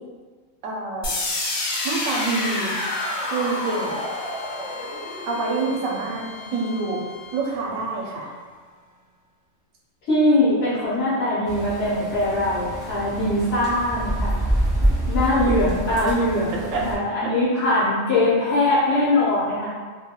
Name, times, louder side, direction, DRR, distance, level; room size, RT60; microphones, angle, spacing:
voice 1, 0.6-1.1 1.8-2.7 3.3-4.0 5.3-7.0 7.3-8.3 16.7-16.8, right 3 dB, 80° right, -1 dB, 1.0 m, -26 dB
sound 1, 1.0-7.0, left 2 dB, 85° left, 1.1 m, -29 dB
Bowed string instrument, 1.7-7.4, left 3 dB, 60° right, 0.6 m, -40 dB
voice 2, 10.1-14.4 15.1-19.7, left 1 dB, 65° left, -10 dB, 1.0 m, -21 dB
sound 2, 11.5-17.0, right 1 dB, ahead, 0.4 m, -26 dB
2.7 x 2.2 x 2.8 m, 1.5 s
omnidirectional pair, 1.4 m